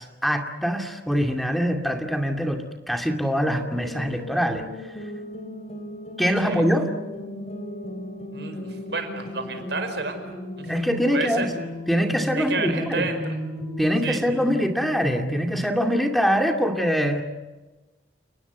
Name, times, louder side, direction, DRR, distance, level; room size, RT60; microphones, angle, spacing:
voice 1, 0.0-4.6 6.2-6.9 10.7-11.5 11.9-13.1 13.8-17.2, equal, ahead, 4 dB, 2.4 m, -23 dB
sound 1, 3.5-15.7, left 1 dB, 40° left, 3.9 m, -35 dB
voice 2, 8.3-10.2 10.6-10.7 11.1-11.5 12.4-13.3 14.0-14.2, right 3 dB, 70° right, 7 dB, 5.1 m, -30 dB
30.0 x 19.5 x 8.2 m, 1.2 s
head